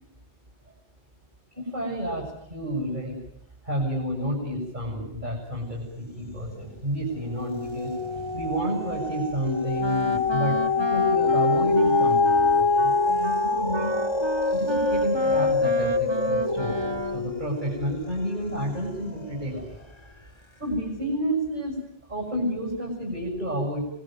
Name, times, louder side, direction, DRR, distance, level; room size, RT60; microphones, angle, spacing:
voice 1, 1.5-3.2 3.6-14.0 14.5-19.8 20.6-21.8 22.1-23.9, equal, 50° right, -2 dB, 7.7 m, -30 dB
sound 1, 6.2-6.7 7.1-19.6 20.1-20.2, left 4 dB, 25° left, 1.8 m, -25 dB
Wind instrument woodwind instrument, 9.8-17.3, right 4 dB, 25° right, 1.1 m, -33 dB
26.0 x 21.0 x 9.4 m, 0.72 s
omnidirectional pair, 1.0 m